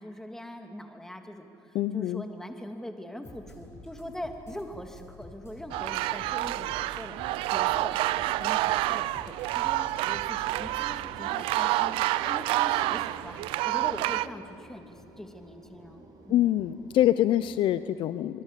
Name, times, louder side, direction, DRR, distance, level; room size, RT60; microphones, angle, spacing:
voice 1, 0.0-7.2 7.5-12.0 12.2-16.6, equal, 5° left, 5 dB, 2.8 m, -42 dB
voice 2, 1.7-2.2 16.3-18.4, left 13 dB, 65° left, 14 dB, 0.7 m, -25 dB
sound 1, 3.2-11.0, left 1 dB, 30° left, 7.8 m, -49 dB
sound 2, 5.7-14.3, right 17 dB, 80° right, 0.6 m, -28 dB
sound 3, 10.4-17.7, right 2 dB, 45° right, 5.9 m, -51 dB
26.0 x 22.5 x 8.4 m, 2.5 s
supercardioid pair, 85°, 9 cm